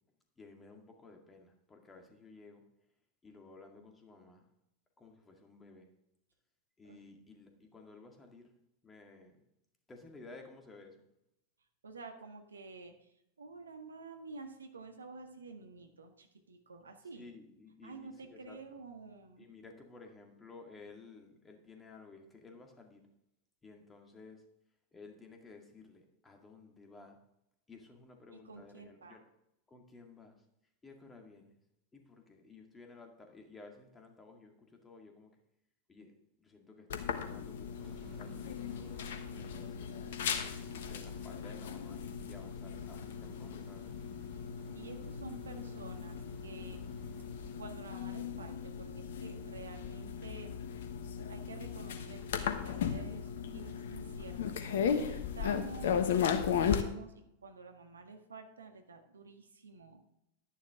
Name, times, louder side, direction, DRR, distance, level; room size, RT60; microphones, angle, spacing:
voice 1, 0.4-2.6 3.2-4.4 5.0-5.9 6.8-8.5 8.8-9.5 9.9-11.0 17.2-18.8 19.4-23.0 23.6-24.4 24.9-27.2 27.7-29.2 29.7-30.4 30.8-31.6 31.9-35.3 35.9-36.1 36.4-39.9 40.4-43.9, left 3 dB, 15° left, 3 dB, 2.1 m, -55 dB
voice 2, 11.8-17.3 17.8-19.5 28.3-29.2 44.7-46.8 47.6-50.5 51.3-60.0, right 3 dB, 75° right, 5 dB, 1.6 m, -50 dB
sound 1, 36.9-56.8, left 7 dB, 60° left, 1.2 m, -36 dB
sound 2, 37.7-47.7, left 4 dB, 25° right, 2.8 m, -57 dB
11.5 x 10.5 x 3.7 m, 0.82 s
figure-of-eight pair, 90°, 0 cm